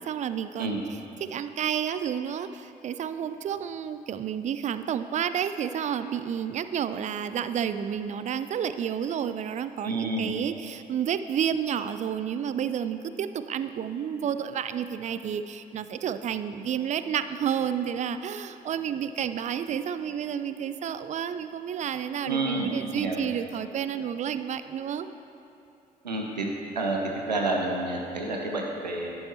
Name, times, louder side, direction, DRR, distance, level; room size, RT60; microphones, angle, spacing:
voice 1, 0.1-0.8 1.3-25.1, right 8 dB, 35° right, 11 dB, 0.4 m, -30 dB
voice 2, 9.8-10.3 22.2-22.7 22.9-23.2 26.0-26.5 26.8-27.0 27.3-29.1, right 2 dB, 85° right, 0 dB, 0.7 m, -29 dB
11.0 x 5.6 x 4.2 m, 2.7 s
figure-of-eight pair, 40°, 21 cm